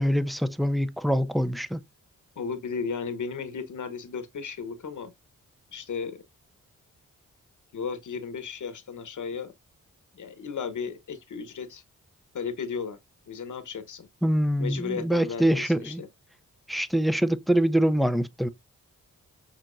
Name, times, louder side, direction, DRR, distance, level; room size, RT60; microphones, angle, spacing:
voice 1, 0.0-1.8 14.2-16.0 16.7-18.5, equal, ahead, 0.5 m, -24 dB
voice 2, 2.4-5.1 5.7-6.2 7.7-9.5 10.1-11.8 12.3-13.0 13.3-14.1 14.6-16.1, left 5 dB, 65° left, 1.1 m, -34 dB
6.8 x 3.0 x 2.5 m
cardioid pair, 50°, 32 cm